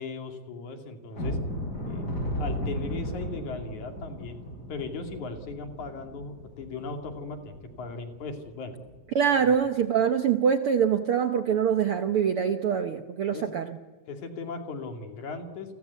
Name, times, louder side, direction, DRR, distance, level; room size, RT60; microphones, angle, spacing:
voice 1, 0.0-1.4 1.9-4.4 4.7-8.7 9.4-9.5 13.3-13.6 14.1-15.8, left 4 dB, 60° left, 5 dB, 3.8 m, -38 dB
sound 1, 1.1-7.9 8.3-8.4 8.8-9.0 9.5-9.6, equal, 25° left, 6.3 m, -35 dB
voice 2, 9.1-13.7, right 7 dB, 80° right, 8 dB, 1.2 m, -24 dB
30.0 x 22.5 x 8.3 m, 1.4 s
omnidirectional pair, 3.9 m